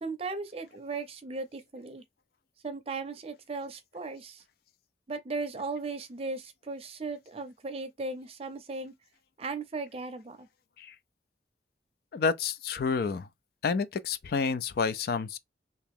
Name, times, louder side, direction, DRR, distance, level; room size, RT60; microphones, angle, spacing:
voice 1, 0.0-2.0 2.6-4.4 5.1-8.9 9.4-10.5, right 3 dB, 35° right, 0.6 m, -37 dB
voice 2, 12.1-13.3 13.6-15.4, left 5 dB, 55° left, 0.4 m, -29 dB
2.9 x 2.8 x 3.6 m
head